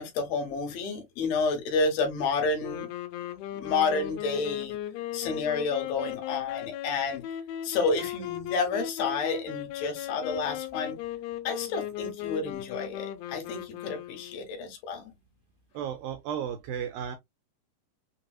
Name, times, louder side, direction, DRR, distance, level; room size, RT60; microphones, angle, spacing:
voice 1, 0.0-2.9 3.5-4.8 5.1-7.2 7.6-11.0 11.4-15.1, left 4 dB, 70° left, 2.9 m, -30 dB
sound 1, 2.6-14.5, left 11 dB, 85° left, 2.8 m, -37 dB
voice 2, 15.7-17.2, right 8 dB, 80° right, 2.1 m, -34 dB
6.7 x 2.9 x 2.3 m
omnidirectional pair, 4.6 m